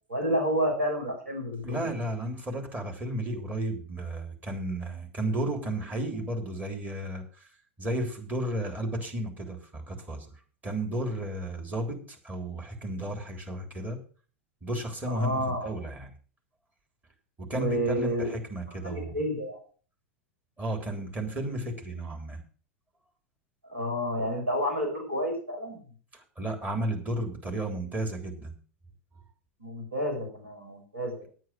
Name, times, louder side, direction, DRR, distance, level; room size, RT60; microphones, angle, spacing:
voice 1, 0.1-1.9 15.1-15.7 17.5-18.4 18.8-19.6 23.7-25.8 29.6-31.2, equal, 90° right, 1 dB, 5.6 m, -30 dB
voice 2, 1.6-7.2 7.8-10.3 10.6-14.0 14.6-16.1 17.4-19.1 20.6-22.4 26.1-28.5, right 1 dB, 25° right, 3 dB, 3.6 m, -33 dB
9.4 x 9.4 x 6.4 m, 0.40 s
figure-of-eight pair, 90°, 7 cm